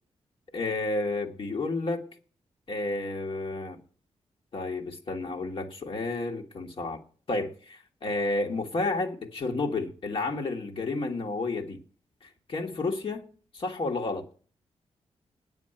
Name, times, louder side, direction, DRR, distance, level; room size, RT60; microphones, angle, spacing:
voice 1, 0.5-2.0 2.7-3.8 4.5-7.0 7.3-11.8 12.2-13.2 13.5-14.2, left 3 dB, 50° left, 1.7 m, -31 dB
9.5 x 7.3 x 8.8 m
wide cardioid pair, 130°, 11 cm